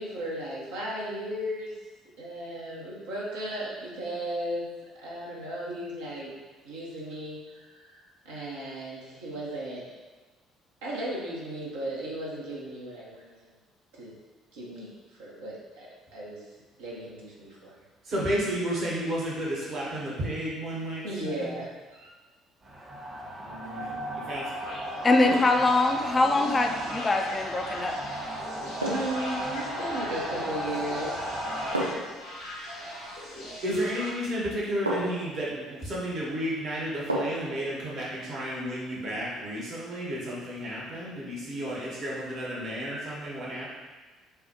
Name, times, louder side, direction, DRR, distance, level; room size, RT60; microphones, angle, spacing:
voice 1, 0.0-1.7 2.2-4.7 4.9-6.3 6.6-9.9 10.8-13.5 14.0-14.2 14.5-16.4 16.8-17.8 21.0-21.7 22.0-22.1 28.8-31.4, right 1 dB, 70° right, -5 dB, 1.1 m, -36 dB
voice 2, 18.0-21.5 23.4-24.7 33.6-43.7, equal, 50° right, -6 dB, 1.3 m, -32 dB
sound 1, 22.6-31.7, equal, 30° right, 1.0 m, -35 dB
sound 2, 23.7-24.0 25.2-25.7 27.7-27.9 28.8-29.3 30.6-31.0 31.7-32.2 33.9-34.0 34.9-35.3 37.1-37.5 37.9-38.0, right 1 dB, 90° right, 0.5 m, -32 dB
sound 3, 24.5-34.1, left 1 dB, 75° left, 1.2 m, -40 dB
voice 3, 25.0-28.0, left 2 dB, 25° left, 4 dB, 0.5 m, -23 dB
7.0 x 2.3 x 3.0 m, 1.3 s
figure-of-eight pair, 50°, 0 cm